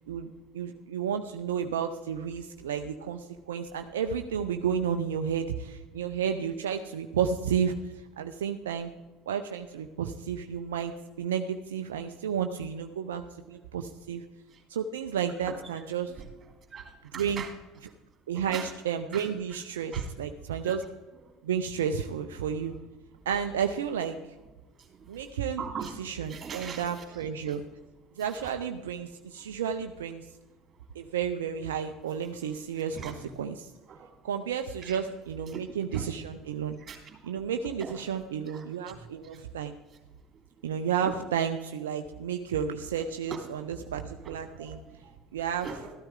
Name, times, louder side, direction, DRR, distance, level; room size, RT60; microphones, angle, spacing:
voice 1, 0.1-8.9 9.3-14.2 14.7-16.1 17.1-17.4 18.3-20.8 21.4-22.8 23.3-24.2 25.1-27.6 28.2-30.3 30.9-33.7 34.2-36.8 37.2-39.7 40.6-44.8 45.3-45.8, right 7 dB, 80° right, 6 dB, 0.5 m, -32 dB
voice 2, 16.7-17.5 18.3-18.7 19.1-19.3 19.9-20.1 20.6-20.7 25.6-25.9 26.3-27.0 28.4-28.5 32.9-33.2 33.9-34.1 34.8-35.0 35.5-35.6 35.9-36.1 36.9-37.2 37.8-38.0 38.5-39.0 41.0-41.1 43.3-43.7 44.2-45.1 45.6-45.9, right 6 dB, 35° right, 3 dB, 2.9 m, -40 dB
14.0 x 12.5 x 3.7 m, 1.2 s
hypercardioid pair, 65°, 0 cm